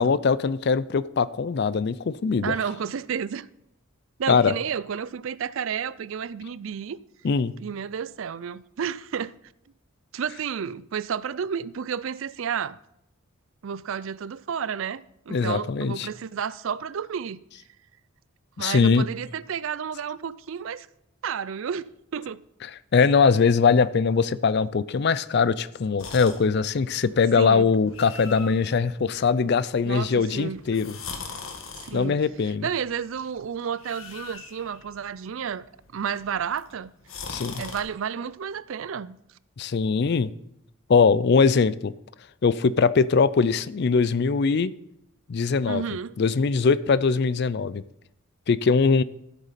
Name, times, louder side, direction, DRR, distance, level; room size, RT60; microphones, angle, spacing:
voice 1, 0.0-2.5 4.3-4.5 7.2-7.5 15.3-16.1 18.6-19.1 22.9-31.0 31.9-32.7 37.3-37.6 39.6-40.3 40.9-41.9 42.4-44.7 45.3-45.8 46.2-47.8 48.5-49.0, left 5 dB, 50° left, 0.4 m, -21 dB
voice 2, 2.4-3.5 4.2-7.0 7.6-9.4 10.1-12.8 13.6-17.4 18.6-20.9 21.2-22.4 27.4-27.7 29.8-30.6 31.8-32.2 32.6-36.9 37.5-39.2 45.7-46.2, right 7 dB, 65° right, 0.4 m, -31 dB
sound 1, 26.0-37.8, left 5 dB, 70° left, 1.4 m, -43 dB
13.0 x 8.1 x 4.1 m
head